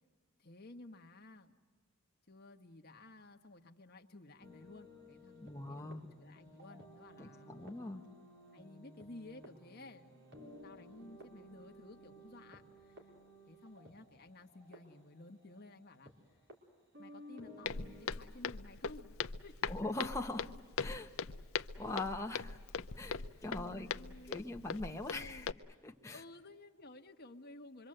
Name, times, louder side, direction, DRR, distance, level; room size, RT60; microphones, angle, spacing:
voice 1, 0.4-1.5 2.3-8.0 8.5-13.1 13.5-16.1 17.0-19.5 23.5-24.4 25.0-25.5 26.1-27.9, left 2 dB, 50° left, 4 dB, 1.4 m, -55 dB
sound 1, 4.4-16.2 16.5-16.6 16.9-18.2, equal, 55° right, 4.1 m, -56 dB
voice 2, 5.4-6.1 7.2-8.0 19.7-20.5 20.8-21.1 21.8-22.6 23.0-23.9 24.3-25.5 25.8-26.2, left 2 dB, 15° left, 2 dB, 1.2 m, -41 dB
Walk footsteps, 17.6-25.5, left 5 dB, 70° left, 0.7 m, -41 dB
25.5 x 24.0 x 7.9 m, 1.4 s
head